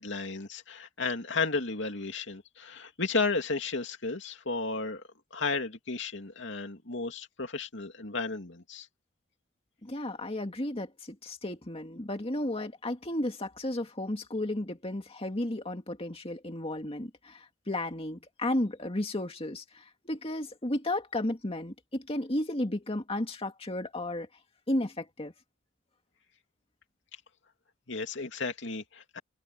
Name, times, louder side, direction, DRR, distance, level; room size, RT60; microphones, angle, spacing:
voice 1, 0.0-5.0 5.3-8.9 27.9-29.2, left 4 dB, 65° left, 2.8 m, -33 dB
voice 2, 9.8-24.3 24.7-25.3, left 1 dB, 30° left, 2.2 m, -33 dB
head